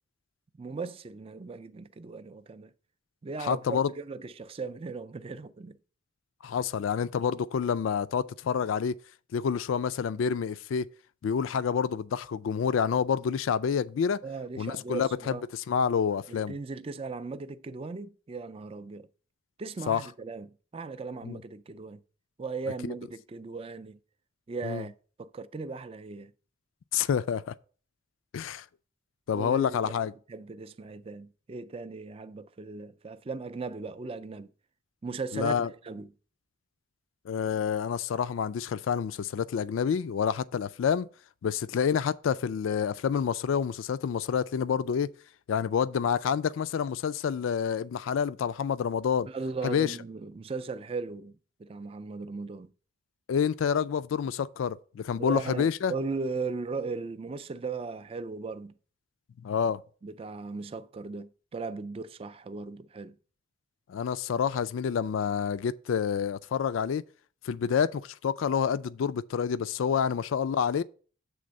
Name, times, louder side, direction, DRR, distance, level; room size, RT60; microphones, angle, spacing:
voice 1, 0.6-2.7 3.2-5.8 14.2-15.4 16.3-19.1 19.6-22.0 22.4-24.0 24.5-26.3 29.3-34.5 35.0-36.1 49.3-52.7 55.2-58.7 60.0-63.2, right 4 dB, 30° right, 0.3 m, -37 dB
voice 2, 3.5-3.9 6.4-8.9 9.3-10.9 11.2-14.2 14.6-15.3 15.7-16.5 19.9-20.0 21.2-21.4 24.6-24.8 26.9-27.5 28.3-28.6 29.3-30.1 35.3-35.7 37.3-41.1 41.4-45.1 45.5-49.3 49.6-49.9 53.3-55.9 59.4-59.8 63.9-67.0 67.4-70.8, left 7 dB, 85° left, 0.3 m, -28 dB
7.7 x 3.4 x 6.4 m
head